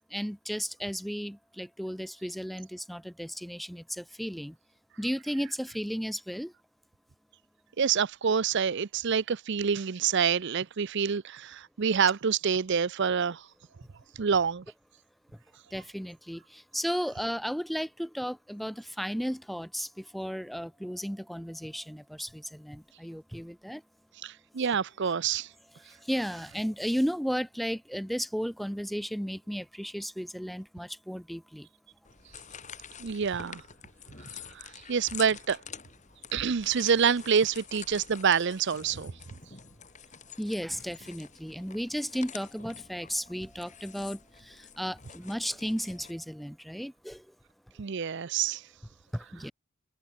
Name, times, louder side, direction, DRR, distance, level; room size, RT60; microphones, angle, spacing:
voice 1, 0.1-4.5 5.0-6.5 15.7-23.8 26.0-31.7 40.4-47.2 49.1-49.5, equal, ahead, 1.0 m, -34 dB
voice 2, 7.8-13.5 14.2-14.6 24.2-25.5 33.0-33.6 34.5-35.6 36.3-39.1 47.8-48.7, right 6 dB, 50° right, 0.5 m, -27 dB
sound 1, 32.0-46.1, left 7 dB, 35° left, 6.1 m, -47 dB
head